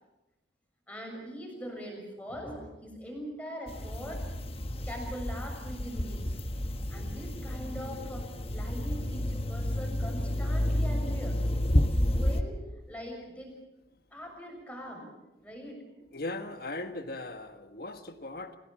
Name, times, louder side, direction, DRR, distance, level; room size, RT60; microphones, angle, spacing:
voice 1, 0.9-4.2 4.8-6.3 6.9-8.2 8.5-11.4 12.1-12.6 12.9-13.5 14.1-15.1 15.4-15.8, equal, 10° left, 1 dB, 6.8 m, -41 dB
sound 1, 3.7-12.4, left 1 dB, 30° left, 1.2 m, -30 dB
voice 2, 16.1-18.6, left 2 dB, 55° left, 8 dB, 1.5 m, -38 dB
28.0 x 17.0 x 7.4 m, 1.0 s
head